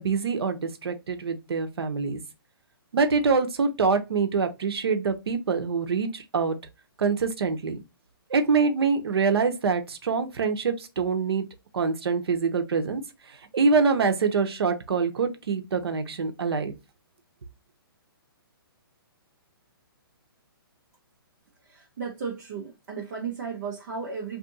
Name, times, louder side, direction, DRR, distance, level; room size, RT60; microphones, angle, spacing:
voice 1, 0.0-2.2 2.9-6.6 7.0-7.8 8.3-11.5 11.7-13.0 13.5-16.7, right 5 dB, 85° right, 0.7 m, -25 dB
voice 2, 21.6-24.4, right 5 dB, 45° right, 0.8 m, -35 dB
2.7 x 2.5 x 3.8 m
hypercardioid pair, 165°, 13 cm